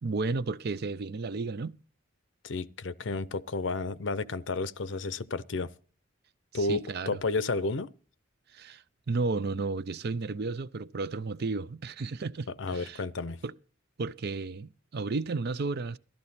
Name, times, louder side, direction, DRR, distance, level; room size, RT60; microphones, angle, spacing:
voice 1, 0.0-1.8 6.5-7.2 8.5-13.0 13.4-13.5 14.0-16.0, right 3 dB, 55° right, 0.5 m, -33 dB
voice 2, 2.4-5.7 6.5-7.9 12.5-13.4, left 3 dB, 65° left, 0.7 m, -32 dB
14.0 x 12.0 x 4.2 m
head